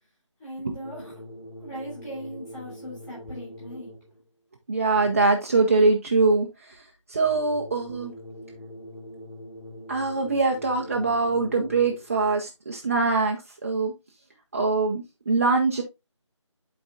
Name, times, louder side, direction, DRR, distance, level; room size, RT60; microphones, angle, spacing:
voice 1, 0.4-1.2 1.6-3.9, equal, 10° left, 3.2 m, -39 dB
sound 1, 0.8-4.2 7.2-12.2, equal, 70° left, 3.3 m, -43 dB
voice 2, 4.7-8.1 9.9-13.4 13.6-13.9 14.5-15.8, right 3 dB, 30° right, 0.7 m, -23 dB
11.5 x 4.3 x 2.4 m
figure-of-eight pair, 165°, 16 cm